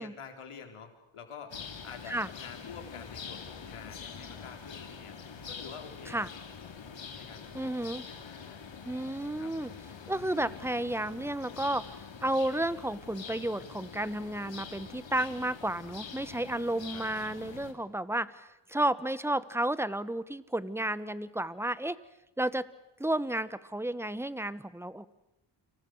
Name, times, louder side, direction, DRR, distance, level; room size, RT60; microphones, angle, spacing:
voice 1, 0.0-5.2 5.5-6.3 7.1-7.7 8.1-8.7 9.4-9.5 16.9-17.1, left 6 dB, 80° left, 5 dB, 4.1 m, -48 dB
sound 1, 1.5-17.7, left 6 dB, 60° left, 3.2 m, -45 dB
voice 2, 7.5-8.0 8.8-9.7 10.1-22.0 22.4-22.7 23.0-25.1, right 1 dB, 5° right, 16 dB, 1.0 m, -32 dB
29.5 x 26.0 x 6.5 m, 0.89 s
wide cardioid pair, 100°, 50 cm